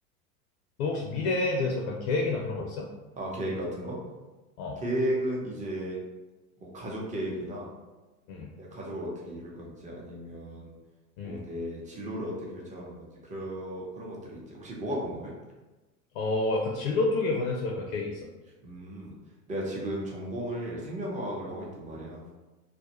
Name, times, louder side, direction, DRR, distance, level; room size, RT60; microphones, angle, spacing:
voice 1, 0.8-2.9 4.6-4.8 8.3-8.5 11.2-11.4 16.1-18.2, left 3 dB, 60° left, -1 dB, 0.6 m, -29 dB
voice 2, 3.2-4.0 4.8-6.0 6.6-7.7 8.6-10.7 11.2-15.3 18.6-19.1 19.5-22.2, right 1 dB, 15° right, -3 dB, 0.7 m, -35 dB
2.4 x 2.1 x 2.9 m, 1.2 s
hypercardioid pair, 90°, 48 cm